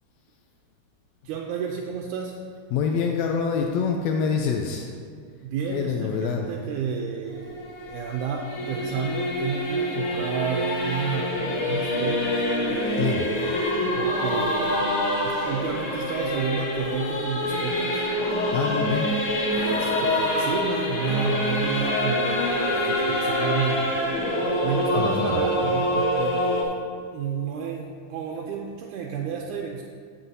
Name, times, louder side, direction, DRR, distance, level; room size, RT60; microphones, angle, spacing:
voice 1, 1.2-2.4 5.4-7.6 7.9-13.4 14.0-14.9 15.2-18.0 19.5-23.9 24.6-26.8 27.1-29.8, right 6 dB, 80° right, 0 dB, 1.9 m, -31 dB
voice 2, 2.7-4.9 5.7-6.5 13.0-13.3 18.5-19.1 25.0-25.3, left 6 dB, 85° left, 2 dB, 1.6 m, -25 dB
Singing / Musical instrument, 7.3-26.6, left 1 dB, 55° left, 1.6 m, -26 dB
15.5 x 5.7 x 2.7 m, 2.1 s
omnidirectional pair, 3.7 m